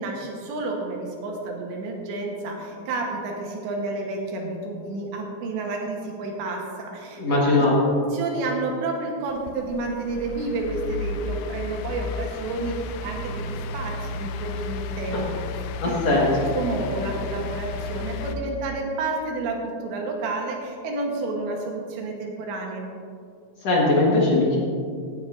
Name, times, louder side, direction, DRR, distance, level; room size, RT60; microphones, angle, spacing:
voice 1, 0.0-7.6 8.1-15.4 15.8-16.2 16.5-22.9, right 3 dB, 80° right, 0 dB, 3.4 m, -30 dB
voice 2, 7.2-7.9 15.1-15.3 15.8-16.5 23.6-24.6, left 2 dB, 60° left, -4 dB, 1.7 m, -20 dB
sound 1, 9.3-18.4, left 4 dB, 90° left, 2.9 m, -33 dB
16.5 x 10.0 x 2.6 m, 2.3 s
omnidirectional pair, 5.0 m